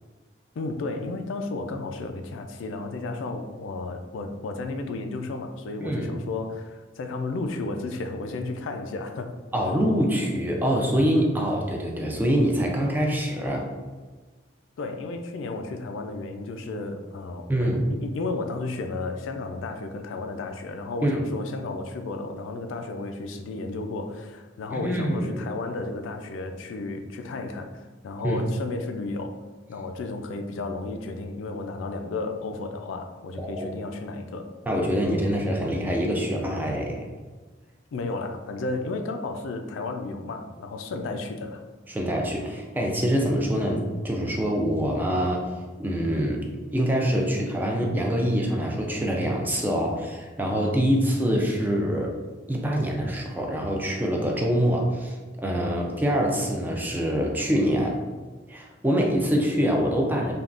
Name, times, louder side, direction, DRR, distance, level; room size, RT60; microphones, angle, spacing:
voice 1, 0.6-9.3 14.8-29.4 29.7-34.5 37.9-41.6, left 3 dB, 85° left, 6 dB, 0.3 m, -33 dB
voice 2, 5.8-6.1 9.5-13.7 17.5-17.8 21.0-21.2 24.7-25.3 28.2-28.4 33.4-33.7 34.7-37.1 41.9-45.5 45.8-46.4 46.7-52.2 52.5-58.0 58.5-60.3, equal, 10° right, 0 dB, 0.3 m, -25 dB
3.5 x 2.3 x 2.4 m, 1.3 s
head